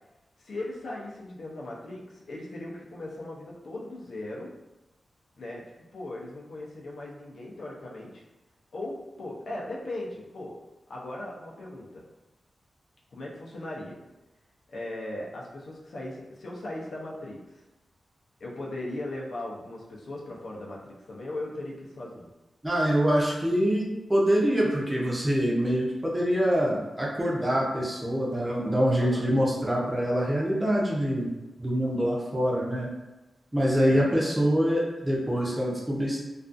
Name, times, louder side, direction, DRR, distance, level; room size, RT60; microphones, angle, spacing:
voice 1, 0.4-4.5 5.4-5.6 5.9-8.2 8.7-10.5 10.9-12.0 13.1-14.0 14.7-17.4 18.4-22.3 29.0-29.3 33.8-34.0, left 1 dB, 70° left, -3 dB, 0.5 m, -38 dB
voice 2, 22.6-31.3 31.6-32.9 33.5-36.2, equal, 15° right, -4 dB, 0.5 m, -25 dB
2.4 x 2.3 x 2.5 m, 1.0 s
wide cardioid pair, 160°, 0 cm